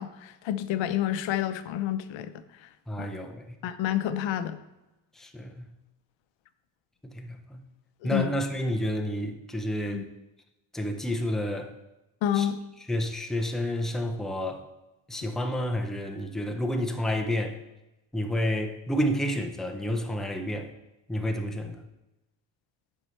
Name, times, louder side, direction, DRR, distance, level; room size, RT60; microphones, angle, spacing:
voice 1, 0.0-2.3 3.0-3.1 3.6-4.6 8.0-8.3 9.9-10.0 12.2-12.6, left 11 dB, 80° left, 12 dB, 0.7 m, -29 dB
voice 2, 2.9-3.5 5.2-5.6 7.0-7.6 8.0-10.0 10.7-11.7 12.3-12.5 12.9-14.6 15.1-17.6 18.1-20.7 21.1-21.8, equal, ahead, 3 dB, 0.6 m, -30 dB
10.5 x 5.5 x 3.2 m, 0.97 s
cardioid pair, 135°, 45 cm